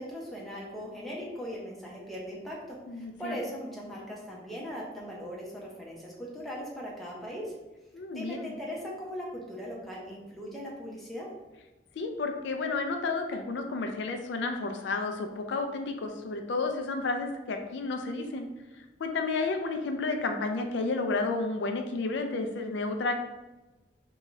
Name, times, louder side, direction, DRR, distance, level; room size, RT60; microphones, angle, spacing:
voice 1, 0.0-7.5 8.1-11.3, equal, ahead, -5 dB, 0.7 m, -39 dB
voice 2, 2.9-3.3 7.9-8.5 12.0-18.5 18.8-23.1, left 3 dB, 80° left, 5 dB, 0.4 m, -31 dB
3.6 x 2.3 x 3.1 m, 1.1 s
head